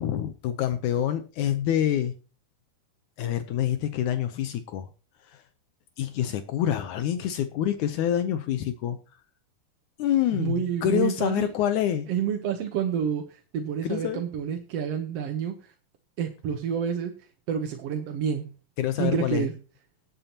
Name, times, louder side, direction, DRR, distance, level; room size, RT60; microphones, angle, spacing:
voice 1, 0.0-2.1 3.2-4.9 5.2-5.4 6.0-9.0 10.0-12.1 13.8-14.2 18.8-19.5, left 10 dB, 75° left, 10 dB, 2.1 m, -26 dB
voice 2, 10.3-11.5 12.1-15.7 16.2-17.1 17.5-18.5 19.0-19.6, right 8 dB, 65° right, 4 dB, 1.7 m, -29 dB
19.0 x 8.9 x 2.9 m, 0.33 s
omnidirectional pair, 3.7 m